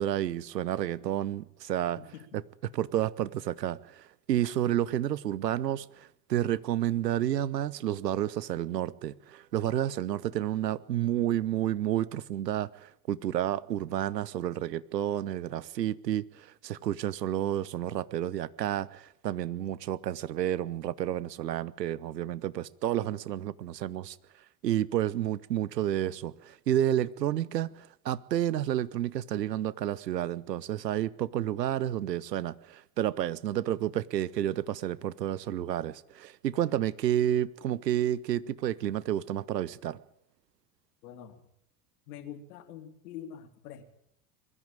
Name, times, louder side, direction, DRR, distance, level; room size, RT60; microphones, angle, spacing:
voice 1, 0.0-2.0 2.3-2.4 2.7-24.2 24.6-40.0, right 12 dB, 80° right, 1.0 m, -30 dB
voice 2, 2.0-2.4 41.0-41.4 42.1-43.8, left 9 dB, 65° left, 3.0 m, -45 dB
22.5 x 13.5 x 8.9 m
hypercardioid pair, 80°, 49 cm